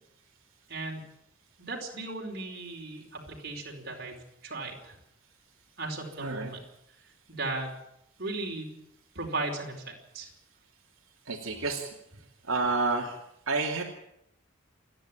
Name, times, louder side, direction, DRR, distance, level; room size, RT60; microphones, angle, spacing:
voice 1, 0.7-1.0 1.6-4.1 4.4-5.0 5.8-6.6 7.3-7.7 8.2-8.7 9.1-10.3, right 2 dB, 50° right, 0 dB, 4.9 m, -36 dB
voice 2, 6.2-6.5 11.2-13.8, right 3 dB, 80° right, -1 dB, 2.9 m, -31 dB
28.0 x 10.5 x 8.9 m, 0.79 s
head